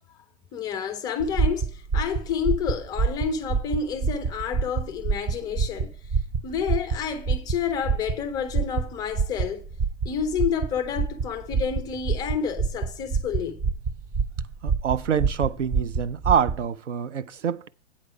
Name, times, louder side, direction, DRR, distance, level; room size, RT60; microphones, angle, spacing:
voice 1, 0.5-5.9 6.4-9.6 10.0-13.7, left 7 dB, 10° left, 0.4 m, -29 dB
sound 1, 1.2-16.6, right 5 dB, 20° right, 0.7 m, -27 dB
voice 2, 14.6-17.7, right 8 dB, 90° right, 0.6 m, -26 dB
8.5 x 4.7 x 6.8 m
hypercardioid pair, 120°, 35 cm